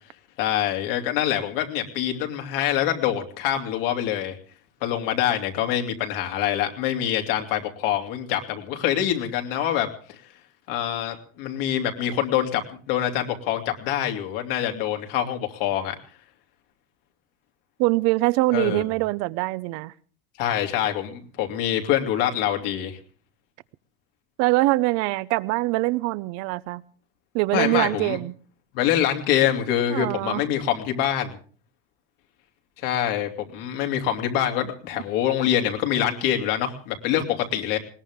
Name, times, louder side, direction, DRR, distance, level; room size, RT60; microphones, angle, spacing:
voice 1, 0.4-4.4 4.8-10.2 10.7-15.9 18.5-18.8 20.4-23.0 27.5-28.2 28.7-31.3 32.8-37.8, left 10 dB, 70° left, 3.0 m, -25 dB
voice 2, 17.8-19.9 24.4-26.8 27.3-28.3 29.9-30.4, right 21 dB, 60° right, 0.8 m, -23 dB
20.5 x 18.5 x 3.7 m
supercardioid pair, 100°, 29 cm